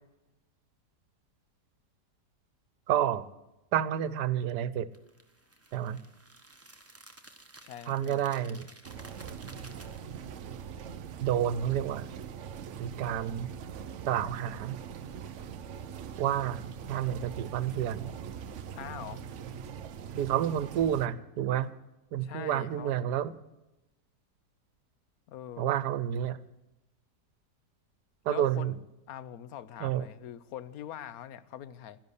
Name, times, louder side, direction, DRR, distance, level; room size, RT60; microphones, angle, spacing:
voice 1, 2.9-3.3 3.7-4.9 5.7-6.0 7.9-8.7 11.2-12.1 12.8-13.5 14.0-14.8 16.2-18.1 20.2-21.7 22.1-23.3 25.6-26.4 28.2-28.8 29.8-30.0, right 10 dB, 80° right, 17 dB, 1.3 m, -30 dB
sound 1, 4.9-10.4, right 2 dB, 10° right, 0.9 m, -54 dB
voice 2, 7.6-8.2 18.7-19.3 22.2-22.9 25.3-25.7 28.3-28.8 29.1-32.0, left 10 dB, 65° left, 16 dB, 1.2 m, -43 dB
sound 2, 8.8-21.1, right 7 dB, 60° right, 0.8 m, -42 dB
13.0 x 11.0 x 8.2 m, 0.97 s
omnidirectional pair, 1.8 m